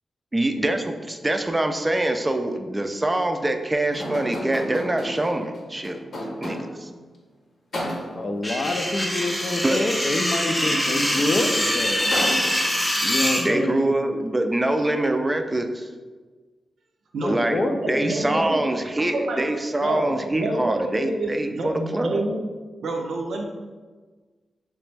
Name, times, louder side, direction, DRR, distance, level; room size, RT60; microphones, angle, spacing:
voice 1, 0.3-6.0 6.4-6.9 9.6-9.9 13.4-15.9 17.3-17.6 17.9-22.2, right 1 dB, 20° right, 6 dB, 0.4 m, -24 dB
sound 1, 3.9-6.9 7.7-8.4 11.0-11.1 11.4-13.0, equal, 70° left, 0.9 m, -32 dB
voice 2, 7.8-12.3 13.0-13.9 17.2-18.6, left 2 dB, 50° left, 4 dB, 0.4 m, -27 dB
sound 2, 8.4-13.4, equal, 10° left, 0.7 m, -24 dB
voice 3, 18.0-18.6 19.1-19.5 19.8-22.4 22.8-23.4, right 2 dB, 85° right, 1 dB, 0.5 m, -28 dB
3.3 x 3.0 x 3.3 m, 1.4 s
cardioid pair, 60°, 0 cm